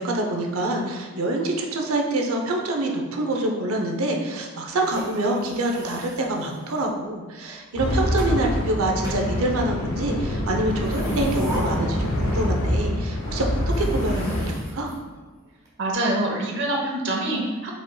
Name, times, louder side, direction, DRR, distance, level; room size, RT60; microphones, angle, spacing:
voice 1, 0.0-14.9, right 2 dB, 85° right, 2 dB, 0.7 m, -26 dB
sound 1, 4.7-7.0 7.7-8.4 9.0-9.9 10.7-12.8 13.1-13.2 13.6-15.7, right 1 dB, 15° right, 1.1 m, -39 dB
sound 2, 7.8-14.5, left 1 dB, 75° left, 0.9 m, -25 dB
voice 2, 15.8-17.7, right 1 dB, 55° right, -1 dB, 0.9 m, -25 dB
5.0 x 4.6 x 2.3 m, 1.4 s
head